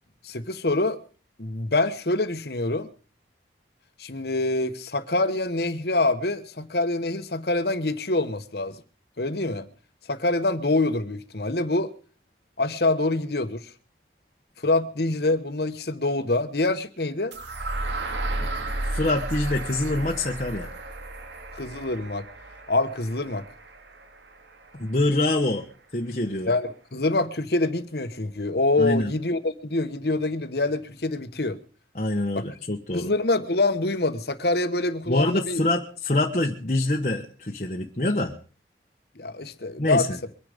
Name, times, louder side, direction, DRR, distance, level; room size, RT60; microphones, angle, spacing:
voice 1, 0.2-1.0 1.4-2.9 4.0-8.7 9.2-9.7 10.1-11.9 12.6-13.6 14.6-17.3 21.5-22.3 22.7-23.5 26.5-31.6 32.3-32.4 32.9-35.6 39.2-40.1, left 2 dB, 60° left, 1.3 m, -25 dB
sound 1, 17.3-25.2, right 2 dB, 80° right, 2.0 m, -34 dB
voice 2, 18.9-20.7 24.8-25.6 25.9-26.5 28.8-29.1 31.9-33.1 35.1-38.3 39.8-40.2, left 2 dB, 40° left, 1.2 m, -25 dB
23.0 x 10.0 x 5.2 m
head